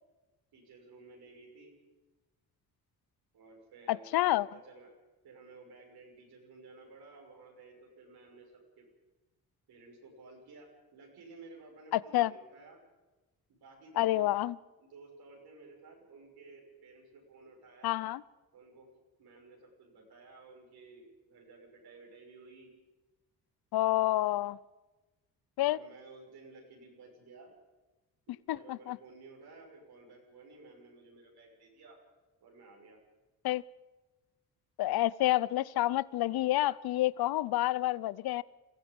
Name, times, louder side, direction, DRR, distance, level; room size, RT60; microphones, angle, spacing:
voice 1, 0.5-1.7 3.3-4.1 4.4-4.9 5.2-8.9 9.7-12.8 13.5-14.3 14.8-18.0 18.5-18.9 19.2-22.7 25.6-27.5 28.3-32.0 32.4-33.0, right 3 dB, 75° right, 6.3 m, -54 dB
voice 2, 3.9-4.5 11.9-12.3 14.0-14.6 17.8-18.2 23.7-24.6 25.6-25.8 28.5-29.0 33.4-33.6 34.8-38.4, left 16 dB, 70° left, 0.7 m, -28 dB
21.5 x 15.0 x 8.7 m
cardioid pair, 80°, 38 cm